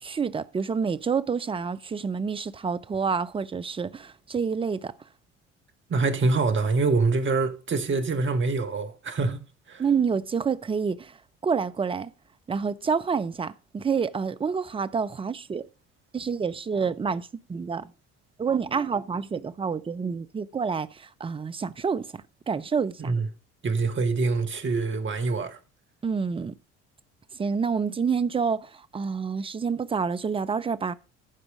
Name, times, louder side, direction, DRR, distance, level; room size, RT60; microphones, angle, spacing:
voice 1, 0.0-4.9 9.8-11.2 11.4-12.1 12.5-15.7 16.1-17.9 18.4-23.1 26.0-26.6 27.4-30.9, right 5 dB, 15° right, 0.5 m, -28 dB
voice 2, 5.9-9.8 23.0-23.3 23.6-25.6, right 3 dB, 30° right, 1.5 m, -25 dB
14.0 x 4.9 x 5.0 m
hypercardioid pair, 60°, 36 cm